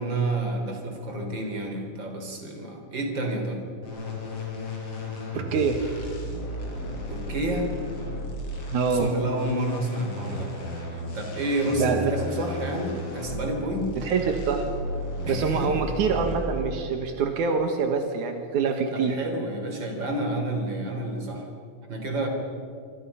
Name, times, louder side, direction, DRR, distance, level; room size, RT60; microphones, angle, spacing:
voice 1, 0.0-3.6 7.1-7.8 8.9-10.5 10.9-14.0 15.2-15.9 18.9-21.5 21.9-22.3, right 1 dB, 25° right, 3 dB, 3.6 m, -30 dB
sound 1, 3.8-16.8, equal, 30° left, 5.8 m, -34 dB
voice 2, 5.3-5.8 8.7-9.1 11.8-12.1 12.4-12.5 14.0-14.7 15.3-19.2, right 5 dB, 80° right, 5 dB, 1.7 m, -25 dB
27.0 x 26.0 x 5.7 m, 2.3 s
omnidirectional pair, 5.8 m